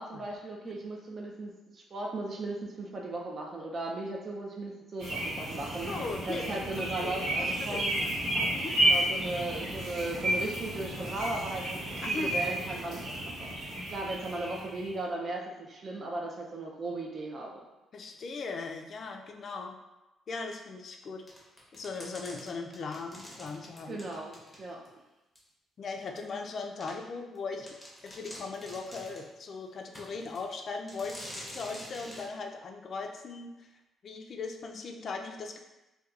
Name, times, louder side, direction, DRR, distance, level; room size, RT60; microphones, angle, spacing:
voice 1, 0.0-5.9 6.3-8.1 8.8-11.8 12.1-13.5 13.9-17.5 23.9-24.8, right 2 dB, 45° right, -1 dB, 0.4 m, -37 dB
sound 1, 5.0-14.9, right 1 dB, 80° right, 0.8 m, -32 dB
voice 2, 5.9-8.1 8.5-8.7 12.0-12.4 17.9-19.8 20.3-21.2 21.7-24.0 25.8-27.7 28.0-33.7 34.0-35.6, left 4 dB, 55° left, 3 dB, 0.3 m, -39 dB
sound 2, 21.3-24.9 25.3-25.4 26.2-26.3 26.8-26.9 27.3-27.4 27.7-29.3 29.9-30.5 30.9-32.3, equal, 10° left, 0.7 m, -47 dB
2.8 x 2.2 x 2.4 m, 1.0 s
cardioid pair, 90°, 0 cm